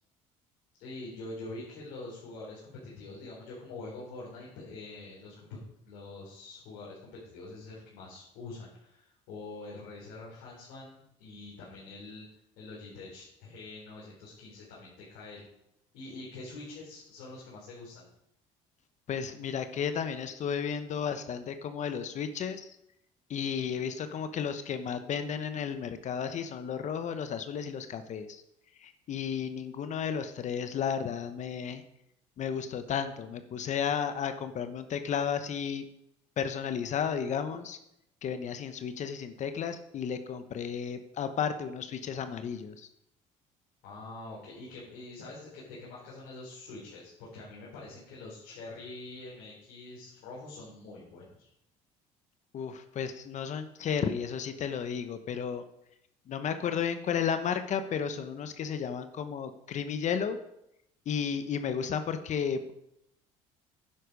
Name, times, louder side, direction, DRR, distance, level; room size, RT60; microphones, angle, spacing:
voice 1, 0.8-5.6 5.8-12.2 12.6-15.5 15.9-18.1 43.8-51.5, left 2 dB, 80° left, -6 dB, 3.9 m, -45 dB
voice 2, 19.1-22.8 23.3-28.4 28.8-31.8 32.4-35.8 36.4-37.8 38.2-42.9 52.5-55.6 56.3-60.4 61.1-62.7, left 7 dB, 50° left, 9 dB, 1.0 m, -33 dB
10.5 x 7.8 x 5.2 m, 0.81 s
supercardioid pair, 80°, 15 cm